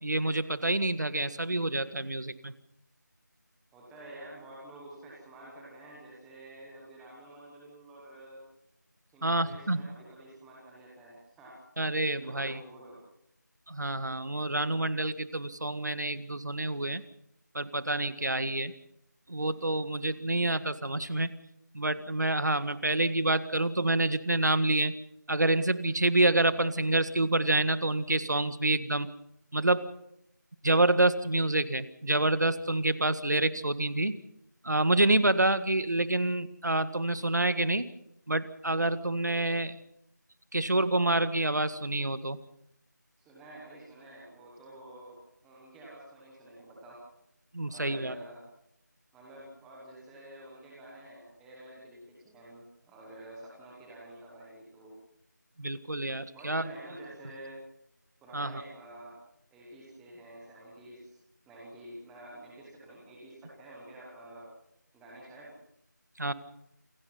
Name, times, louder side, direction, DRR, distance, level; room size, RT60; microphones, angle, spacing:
voice 1, 0.0-2.5 9.2-9.9 11.8-12.6 13.7-17.0 17.5-18.7 19.3-21.4 21.7-24.9 25.3-29.1 29.5-29.9 30.6-34.2 34.6-37.9 38.3-39.8 40.5-42.4 47.5-48.1 55.6-56.7 58.3-58.5 66.2-66.3, right 2 dB, 65° right, 13 dB, 1.8 m, -27 dB
voice 2, 3.7-8.4 9.1-11.6 12.2-13.0 43.2-45.1 45.4-47.0 47.6-48.4 49.1-54.9 56.3-57.6 58.2-59.2 59.5-61.2 61.5-64.5 64.9-65.5, right 1 dB, ahead, -4 dB, 1.0 m, -49 dB
27.5 x 17.5 x 5.6 m, 0.76 s
figure-of-eight pair, 175°, 10 cm